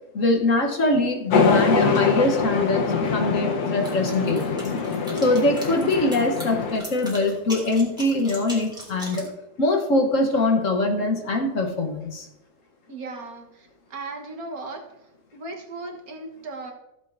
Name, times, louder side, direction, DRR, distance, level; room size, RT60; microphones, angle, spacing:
voice 1, 0.1-2.8 3.1-4.6 5.2-9.3 9.6-12.3, left 2 dB, 55° left, 3 dB, 1.4 m, -23 dB
sound 1, 1.3-6.8, left 5 dB, 70° left, 1.5 m, -23 dB
sound 2, 3.8-9.3, equal, 5° right, 2.5 m, -39 dB
voice 2, 12.9-16.7, right 3 dB, 65° right, 1 dB, 1.8 m, -37 dB
15.5 x 7.5 x 2.6 m, 0.94 s
omnidirectional pair, 1.7 m